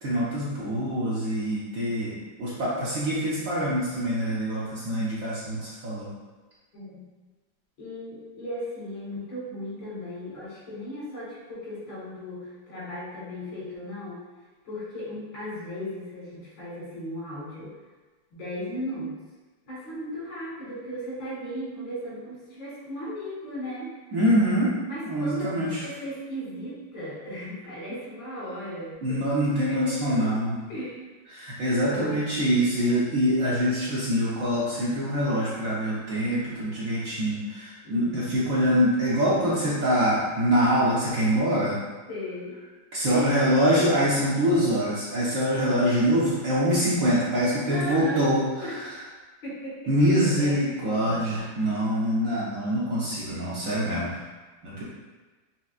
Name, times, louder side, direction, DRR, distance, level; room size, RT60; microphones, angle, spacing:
voice 1, 0.0-6.1 24.1-24.7 25.0-25.8 29.0-30.6 31.3-41.8 42.9-48.4 49.9-54.1 54.6-54.8, equal, 60° right, -8 dB, 0.9 m, -24 dB
voice 2, 6.7-7.0 7.8-14.2 14.6-17.8 18.3-19.2 19.7-23.9 24.9-29.2 29.7-30.3 30.7-31.1 31.7-32.7 37.8-38.3 42.1-42.6 43.1-43.5 47.7-49.0 49.4-51.4 51.8-51.9, equal, 85° left, -8 dB, 2.1 m, -36 dB
5.6 x 2.0 x 2.4 m, 1.3 s
omnidirectional pair, 2.0 m